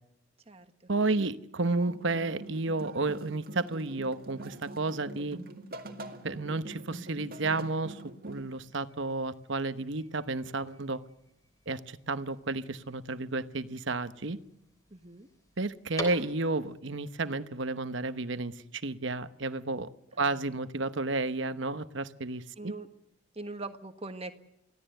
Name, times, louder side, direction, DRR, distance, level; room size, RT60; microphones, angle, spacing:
voice 1, 0.9-5.4 6.2-11.0 11.7-14.4 15.6-19.9 20.2-22.7, right 3 dB, 60° right, 11 dB, 1.0 m, -32 dB
sound 1, 1.6-8.4, right 2 dB, 45° right, 2.2 m, -44 dB
sound 2, 8.3-16.8, left 1 dB, 15° left, 3.4 m, -48 dB
voice 2, 14.9-15.3 20.1-20.6 22.6-22.9 23.3-24.3, right 2 dB, 30° right, 7 dB, 1.5 m, -42 dB
24.5 x 16.5 x 7.9 m, 0.84 s
head